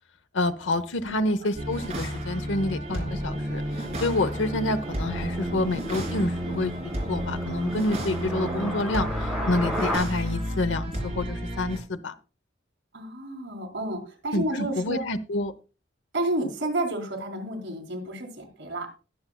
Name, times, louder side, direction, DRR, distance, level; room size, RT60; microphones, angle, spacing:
voice 1, 0.3-6.7 7.1-12.1 14.3-15.5, left 2 dB, 80° left, 12 dB, 0.9 m, -28 dB
sound 1, 1.5-11.8, equal, 35° right, 3.6 m, -32 dB
sound 2, 2.6-10.0, equal, ahead, 4.7 m, -35 dB
voice 2, 12.9-15.0 16.1-18.9, right 1 dB, 65° right, 4 dB, 3.1 m, -31 dB
20.0 x 7.1 x 2.3 m, 0.34 s
head